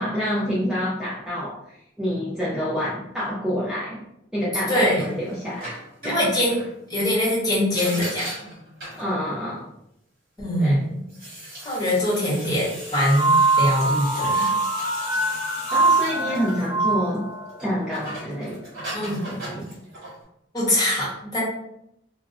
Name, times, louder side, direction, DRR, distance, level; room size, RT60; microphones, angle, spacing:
voice 1, 0.0-4.0 4.3-5.7 6.0-6.3 8.9-9.7 10.5-10.8 15.7-17.3 17.6-18.7 19.2-19.7, equal, 5° right, -9 dB, 0.4 m, -28 dB
voice 2, 4.7-5.1 6.0-6.6 6.9-8.3 10.4-11.0 11.6-14.5 18.9-19.2 19.5-19.6 20.5-21.4, left 1 dB, 20° left, -6 dB, 0.9 m, -23 dB
sound 1, 5.0-6.7 7.7-9.1 11.0-17.2 17.5-20.2, right 1 dB, 50° right, 1.1 m, -37 dB
sound 2, 12.9-18.0, right 3 dB, 55° left, 0.5 m, -23 dB
2.5 x 2.0 x 2.4 m, 0.80 s
head